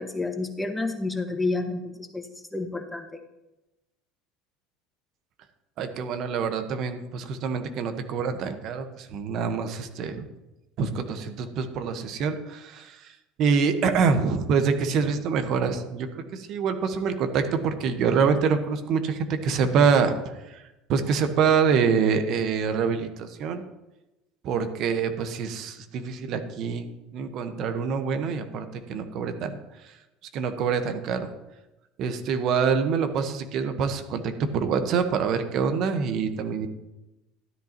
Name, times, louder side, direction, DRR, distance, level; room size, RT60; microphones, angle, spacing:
voice 1, 0.0-2.2 2.5-3.1, left 3 dB, 10° left, 5 dB, 1.4 m, -29 dB
voice 2, 5.8-10.3 10.8-13.1 13.4-20.1 20.5-20.6 20.9-23.6 24.4-26.8 27.1-29.6 29.8-29.9 30.3-31.3 32.0-36.7, right 6 dB, 55° right, 8 dB, 1.2 m, -25 dB
12.5 x 10.5 x 3.0 m, 0.99 s
hypercardioid pair, 85°, 0 cm